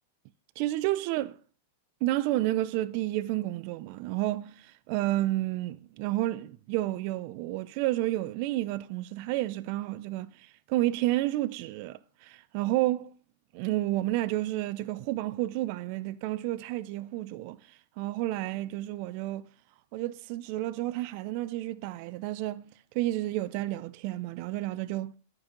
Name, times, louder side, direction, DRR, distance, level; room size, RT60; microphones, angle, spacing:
voice 1, 0.6-1.4 2.0-10.3 10.7-13.1 13.5-17.6 18.0-19.4 19.9-22.7 22.9-25.1, right 16 dB, 40° right, 0.4 m, -30 dB
9.8 x 5.3 x 5.2 m
supercardioid pair, 160°, 0 cm